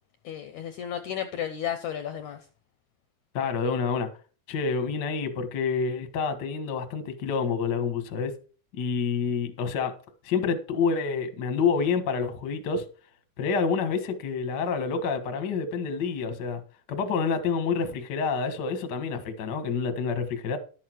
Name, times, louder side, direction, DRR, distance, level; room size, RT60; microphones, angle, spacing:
voice 1, 0.2-2.4, left 9 dB, 80° left, 1.7 m, -33 dB
voice 2, 3.3-4.1 4.5-8.3 8.7-9.9 10.2-12.8 13.4-16.6 16.9-20.6, left 5 dB, 65° left, 1.0 m, -28 dB
11.5 x 8.5 x 4.6 m
omnidirectional pair, 4.3 m